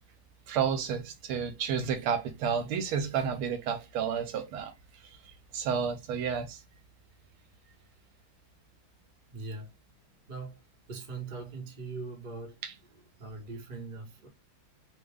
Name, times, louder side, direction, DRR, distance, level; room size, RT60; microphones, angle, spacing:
voice 1, 0.5-4.7 5.5-6.6 12.6-12.7, right 7 dB, 80° right, 1.5 m, -31 dB
voice 2, 9.3-9.7 10.3-12.6 12.9-14.3, right 3 dB, 35° right, 0.8 m, -41 dB
3.7 x 2.1 x 3.4 m
omnidirectional pair, 2.4 m